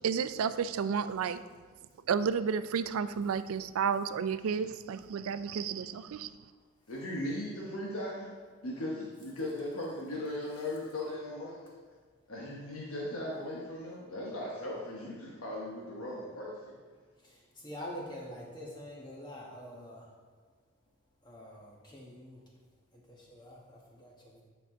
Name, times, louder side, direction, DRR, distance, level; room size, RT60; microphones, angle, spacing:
voice 1, 0.0-1.4 2.1-6.3, right 6 dB, 85° right, 13 dB, 0.3 m, -31 dB
voice 2, 6.9-8.3 8.6-11.6 12.3-16.8, left 1 dB, 80° left, -3 dB, 1.0 m, -38 dB
voice 3, 17.2-20.0 21.2-22.4 23.1-24.4, equal, 20° left, -3 dB, 1.3 m, -46 dB
9.2 x 4.7 x 3.7 m, 1.5 s
head